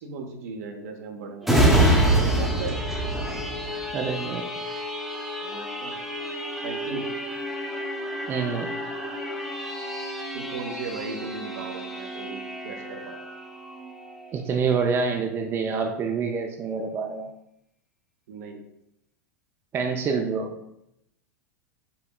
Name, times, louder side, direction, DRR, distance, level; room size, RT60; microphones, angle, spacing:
voice 1, 0.0-2.8 5.4-6.0 6.6-7.1 10.3-13.3 18.3-18.6, right 4 dB, 60° right, 4 dB, 0.8 m, -37 dB
sound 1, 1.4-14.8 15.2-15.3, right 1 dB, ahead, 0.8 m, -27 dB
voice 2, 3.9-4.5 8.2-8.7 14.3-17.3 19.7-20.5, right 5 dB, 25° right, 3 dB, 0.4 m, -27 dB
5.6 x 3.7 x 2.3 m, 0.80 s
figure-of-eight pair, 90°, 9 cm